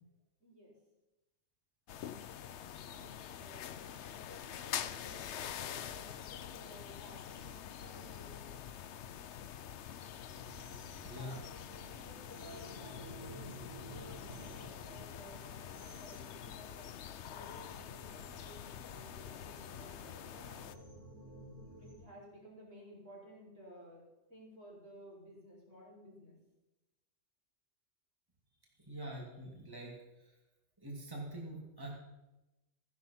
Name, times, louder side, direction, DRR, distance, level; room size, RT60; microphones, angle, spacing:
voice 1, 0.4-0.8 2.9-8.6 11.1-20.8 21.8-24.0 24.3-26.4, equal, 75° right, -5 dB, 5.3 m, -56 dB
sound 1, 1.9-20.7, left 9 dB, 70° left, 0.9 m, -46 dB
sound 2, 10.3-21.9, right 2 dB, 40° right, 6.5 m, -55 dB
voice 2, 11.0-11.4 28.9-30.3 30.8-32.0, right 1 dB, 20° right, -3 dB, 2.5 m, -45 dB
14.5 x 10.5 x 5.8 m, 1.0 s
omnidirectional pair, 1.3 m